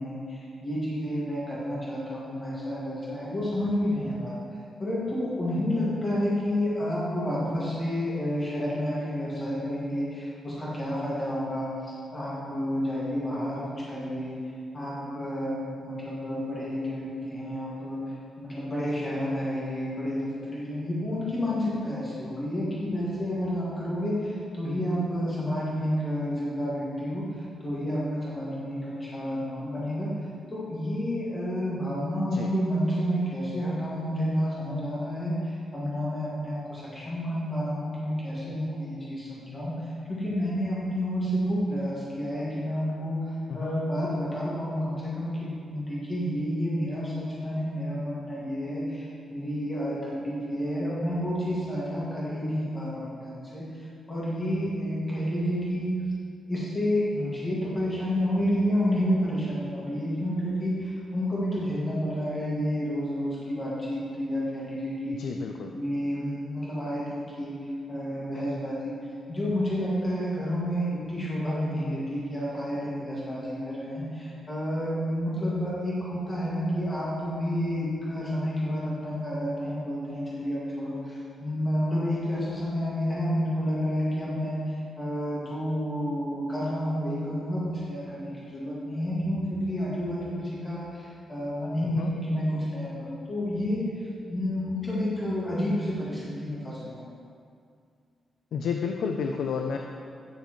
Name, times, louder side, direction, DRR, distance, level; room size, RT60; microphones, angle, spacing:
voice 1, 0.0-4.3 4.8-14.4 14.7-18.0 18.4-30.1 30.5-39.8 40.1-43.2 43.5-56.0 56.5-65.2 65.7-67.5 67.9-68.9 69.3-97.1, equal, 20° left, -8 dB, 2.1 m, -30 dB
voice 2, 65.2-65.8 92.0-92.1 98.5-99.8, left 6 dB, 75° left, 3 dB, 0.4 m, -30 dB
9.8 x 6.8 x 3.1 m, 2.3 s
wide cardioid pair, 160°, 0 cm